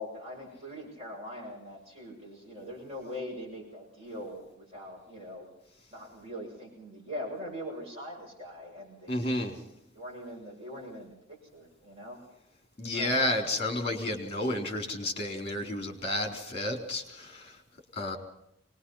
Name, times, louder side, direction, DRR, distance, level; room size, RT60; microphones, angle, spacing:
voice 1, 0.0-5.4 5.9-12.2 12.9-13.5, left 1 dB, 30° right, -2 dB, 7.3 m, -42 dB
voice 2, 9.1-9.6 12.8-17.5 17.9-18.2, left 1 dB, 30° left, 3 dB, 4.0 m, -31 dB
24.5 x 20.5 x 5.8 m, 0.79 s
head